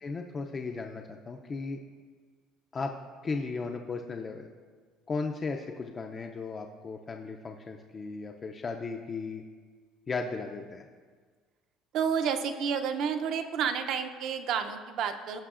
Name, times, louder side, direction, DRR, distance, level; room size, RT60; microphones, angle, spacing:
voice 1, 0.0-1.8 2.7-2.9 3.2-4.5 5.1-9.4 10.1-10.9, left 4 dB, 25° left, 3 dB, 0.4 m, -36 dB
voice 2, 11.9-15.4, right 7 dB, 55° right, 7 dB, 0.5 m, -30 dB
15.5 x 5.5 x 2.4 m, 1.6 s
cardioid pair, 155°, 0 cm